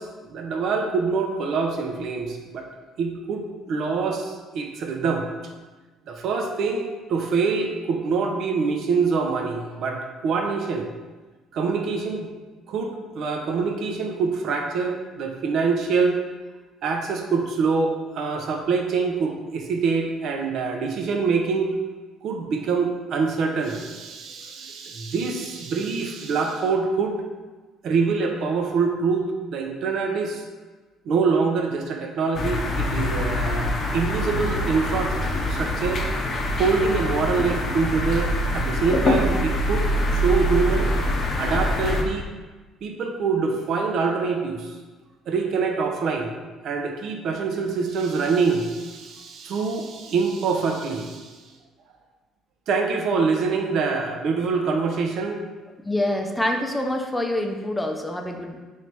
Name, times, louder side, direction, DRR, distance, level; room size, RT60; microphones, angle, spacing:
voice 1, 0.0-2.6 3.0-5.3 6.1-10.9 11.5-12.3 12.7-16.2 16.8-21.7 22.2-27.2 27.8-29.2 29.5-30.4 31.1-35.2 35.5-36.0 36.5-40.9 41.4-42.3 42.8-44.8 45.3-46.4 46.6-51.4 52.7-55.4, right 4 dB, 65° right, 3 dB, 0.6 m, -25 dB
sound 1, 32.3-42.0, left 1 dB, 45° left, 0.6 m, -24 dB
voice 2, 55.8-58.6, left 1 dB, 5° left, 3 dB, 0.5 m, -26 dB
3.2 x 2.7 x 4.6 m, 1.3 s
cardioid pair, 95°, 0 cm